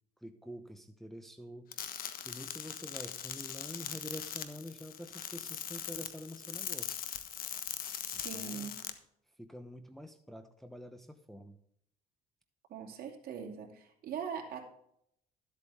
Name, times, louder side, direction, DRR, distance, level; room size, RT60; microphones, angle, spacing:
voice 1, 0.2-1.7 2.2-7.0 8.1-8.7 9.4-11.6, equal, ahead, 5 dB, 1.0 m, -47 dB
sound 1, 1.7-8.9, left 9 dB, 60° left, 1.2 m, -41 dB
voice 2, 8.0-8.8 12.7-14.7, right 7 dB, 60° right, 1 dB, 2.6 m, -42 dB
13.0 x 8.3 x 3.5 m, 0.70 s
cardioid pair, 110°, 17 cm